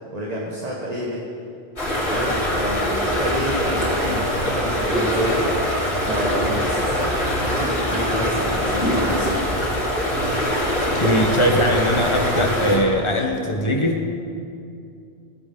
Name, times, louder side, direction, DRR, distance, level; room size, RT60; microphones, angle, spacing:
voice 1, 0.1-1.2 2.1-5.5 6.0-9.4, equal, 40° right, -3 dB, 1.4 m, -28 dB
sound 1, 1.8-12.8, equal, 90° left, 3.6 m, -23 dB
voice 2, 10.7-14.1, equal, 30° left, 1 dB, 1.3 m, -21 dB
17.0 x 9.2 x 3.9 m, 2.6 s
omnidirectional pair, 1.0 m